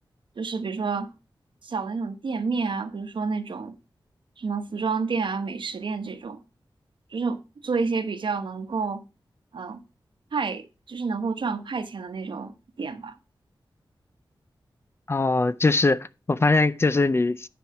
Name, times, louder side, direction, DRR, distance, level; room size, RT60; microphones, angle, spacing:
voice 1, 0.4-1.1 1.6-3.8 4.4-6.4 7.1-9.0 9.5-9.8 10.3-13.1, right 4 dB, 70° right, 1.0 m, -29 dB
voice 2, 15.1-17.5, left 3 dB, 30° left, 0.4 m, -22 dB
10.0 x 4.7 x 5.7 m
wide cardioid pair, 115°, 8 cm